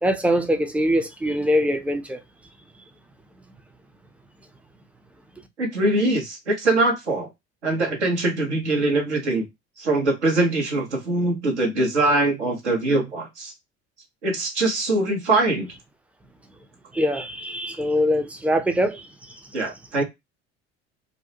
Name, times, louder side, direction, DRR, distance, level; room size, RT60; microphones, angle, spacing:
voice 1, 0.0-2.2 16.9-19.1, equal, 5° right, 0.4 m, -23 dB
voice 2, 5.6-7.3 7.6-9.5 9.8-13.5 14.2-15.7 19.5-20.0, right 2 dB, 85° right, 0.9 m, -22 dB
2.5 x 2.1 x 2.7 m
figure-of-eight pair, 65°, 34 cm